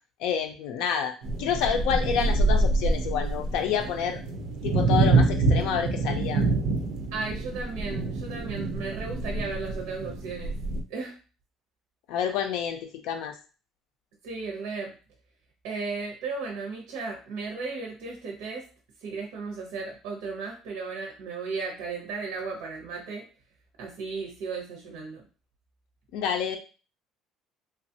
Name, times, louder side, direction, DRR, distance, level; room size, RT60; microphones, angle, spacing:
voice 1, 0.2-4.2 4.6-6.4 12.1-13.3 26.1-26.6, left 8 dB, 65° left, 5 dB, 0.4 m, -28 dB
sound 1, 1.2-10.8, right 2 dB, 50° right, 0.4 m, -26 dB
voice 2, 7.1-10.5 10.9-11.1 14.2-14.9 15.6-18.6 19.0-23.2 23.8-25.2, right 4 dB, 85° right, 0 dB, 0.7 m, -35 dB
3.1 x 2.3 x 2.7 m, 0.35 s
cardioid pair, 180°, 0 cm